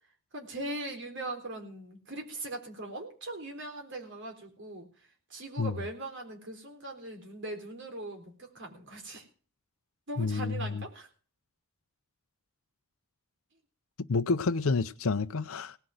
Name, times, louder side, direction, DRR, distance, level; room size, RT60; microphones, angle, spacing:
voice 1, 0.3-4.9 5.3-9.3 10.1-11.1, right 2 dB, 55° right, 3.9 m, -40 dB
voice 2, 10.2-10.8 14.1-15.8, left 4 dB, 65° left, 0.6 m, -29 dB
17.5 x 5.9 x 7.9 m
head